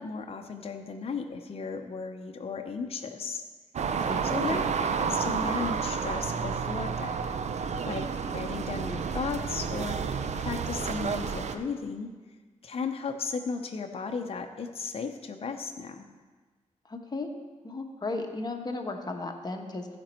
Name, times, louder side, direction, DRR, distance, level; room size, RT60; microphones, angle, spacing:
voice 1, 0.0-3.4 4.2-4.6 5.0-7.3 7.9-10.0 10.4-12.1 12.6-16.1, left 5 dB, 50° left, 4 dB, 0.8 m, -35 dB
sound 1, 3.7-11.6, right 6 dB, 60° right, 0.6 m, -30 dB
voice 2, 16.8-17.3 17.6-19.9, left 3 dB, 30° left, 4 dB, 1.2 m, -35 dB
15.0 x 5.3 x 4.4 m, 1.4 s
cardioid pair, 75°, 13 cm